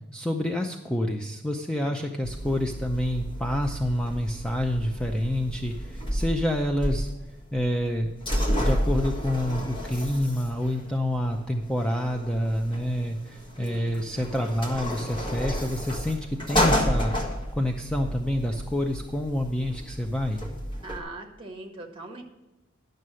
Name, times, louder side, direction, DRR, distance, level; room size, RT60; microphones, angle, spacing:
voice 1, 0.1-7.1 7.5-8.1 8.6-17.1 17.5-20.4, left 1 dB, 5° left, 3 dB, 0.5 m, -28 dB
voice 2, 1.8-2.2 13.6-14.0 20.8-22.2, right 2 dB, 25° right, 3 dB, 1.5 m, -41 dB
sound 1, 2.2-21.0, equal, 25° left, 1.6 m, -31 dB
11.0 x 6.6 x 6.2 m, 1.0 s
head